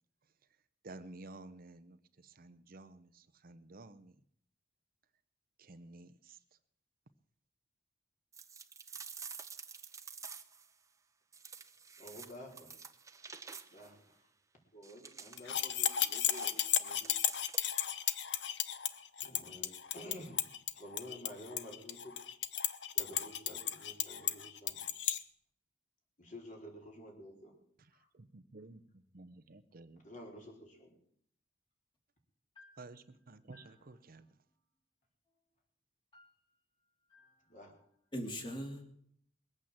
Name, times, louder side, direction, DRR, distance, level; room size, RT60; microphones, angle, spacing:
voice 1, 0.8-4.2 5.6-6.4 27.8-28.8 29.1-30.0 32.8-34.3, right 2 dB, 50° right, 12 dB, 0.8 m, -53 dB
sound 1, 8.3-10.7 11.3-14.0 14.8-17.9, right 5 dB, 15° right, 0.8 m, -50 dB
voice 2, 12.0-12.7 13.7-14.3 14.7-17.2 18.5-18.9 19.2-20.5 20.7-22.2 22.9-24.8 26.2-27.6 28.0-28.1 30.0-31.0 37.5-37.9, equal, 45° left, 0 dB, 4.4 m, -51 dB
sound 2, 15.4-25.2, left 11 dB, 70° left, 0.9 m, -34 dB
voice 3, 38.1-38.8, equal, 25° left, 3 dB, 3.1 m, -42 dB
21.0 x 8.7 x 7.5 m, 0.66 s
head